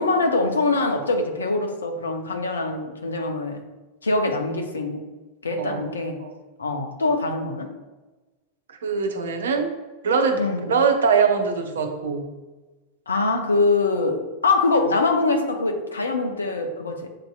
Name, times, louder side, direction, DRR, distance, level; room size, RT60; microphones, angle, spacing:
voice 1, 0.0-3.6 4.0-5.1 5.4-6.2 6.6-7.7 10.4-10.7 13.1-17.1, left 3 dB, 75° left, 5 dB, 0.6 m, -23 dB
voice 2, 5.6-5.9 6.2-6.3 8.7-9.7 10.0-10.4 10.7-12.2, right 5 dB, 65° right, 5 dB, 0.6 m, -22 dB
7.5 x 2.7 x 2.2 m, 1.2 s
figure-of-eight pair, 90°, 0 cm